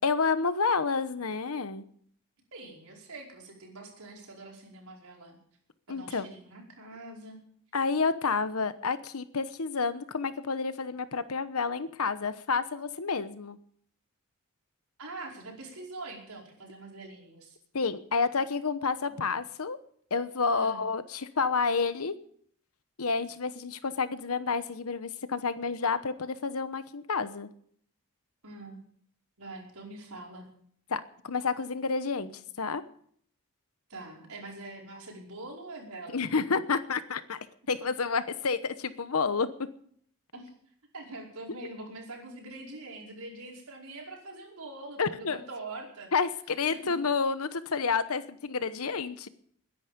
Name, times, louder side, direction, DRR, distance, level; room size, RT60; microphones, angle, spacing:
voice 1, 0.0-1.8 5.9-6.3 7.7-13.6 17.7-19.8 20.1-22.1 23.0-27.5 30.9-32.3 32.6-32.8 36.1-37.4 37.7-39.5 45.0-45.4 46.1-49.3, left 4 dB, 75° left, 13 dB, 1.0 m, -29 dB
voice 2, 2.5-5.4 5.9-7.4 15.0-17.6 19.1-19.2 20.5-20.8 28.4-28.8 29.4-30.5 33.9-36.3 40.3-40.5 40.9-46.1 46.7-47.0, right 2 dB, 80° right, -1 dB, 5.1 m, -44 dB
20.5 x 10.5 x 5.2 m, 0.62 s
head